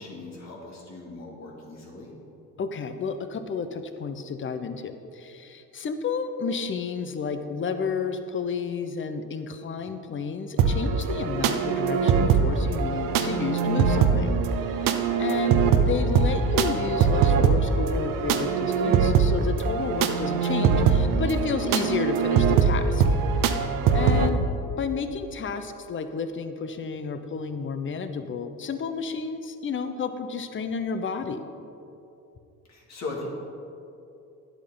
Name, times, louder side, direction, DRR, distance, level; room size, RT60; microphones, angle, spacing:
voice 1, 0.0-2.1 15.2-15.6 24.1-24.6 32.7-33.3, left 3 dB, 55° left, -2 dB, 2.1 m, -39 dB
voice 2, 2.6-14.3 14.8-14.9 15.2-23.0 23.9-24.4 24.8-31.4, left 5 dB, 35° left, 9 dB, 0.8 m, -31 dB
sound 1, 10.6-24.3, right 6 dB, 75° right, 0.8 m, -22 dB
10.0 x 8.1 x 3.9 m, 2.7 s
supercardioid pair, 80°, 33 cm